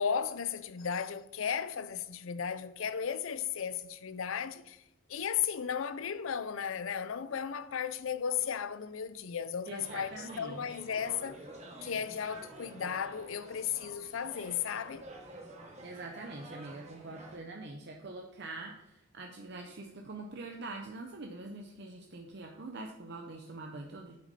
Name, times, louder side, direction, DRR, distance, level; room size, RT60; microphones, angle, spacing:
voice 1, 0.0-4.8 5.1-11.4 11.8-15.1, left 7 dB, 75° left, 0.5 m, -35 dB
voice 2, 9.7-10.7 15.8-24.2, right 2 dB, 55° right, 0.7 m, -44 dB
sound 1, 9.8-17.4, right 1 dB, 35° right, 1.3 m, -49 dB
8.8 x 6.1 x 4.2 m
head